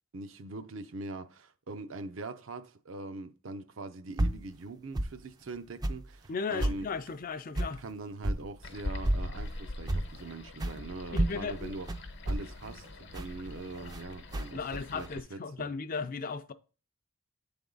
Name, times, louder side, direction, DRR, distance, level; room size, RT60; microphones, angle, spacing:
voice 1, 0.1-6.9 7.8-11.9 12.3-15.7, right 3 dB, 70° right, 0.6 m, -42 dB
sound 1, 4.2-4.5 4.9-5.2 5.8-6.1 6.6-6.8 7.6-7.8 8.2-8.4 9.0-9.3 9.9-10.2 10.6-10.8 11.1-14.0 14.3-15.1, right 1 dB, 20° right, 0.4 m, -31 dB
voice 2, 6.3-7.8 11.1-11.7 14.5-16.5, left 5 dB, 45° left, 0.4 m, -36 dB
sound 2, 8.6-15.2, left 2 dB, 60° left, 0.9 m, -43 dB
8.6 x 3.5 x 3.8 m
head